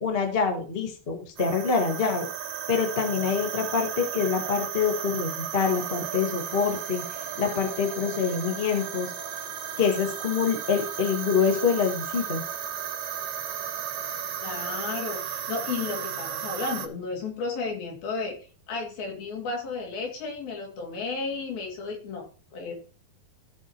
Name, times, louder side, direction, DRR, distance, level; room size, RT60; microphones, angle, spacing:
voice 1, 0.0-2.3 2.7-7.0 7.4-9.1 9.8-12.4, left 6 dB, 40° left, 2 dB, 0.8 m, -26 dB
sound 1, 1.4-16.9, right 9 dB, 70° right, 1.8 m, -34 dB
voice 2, 14.4-18.4 18.7-22.3 22.5-22.7, left 4 dB, 70° left, 0 dB, 4.3 m, -33 dB
15.5 x 6.2 x 3.0 m, 0.38 s
omnidirectional pair, 4.5 m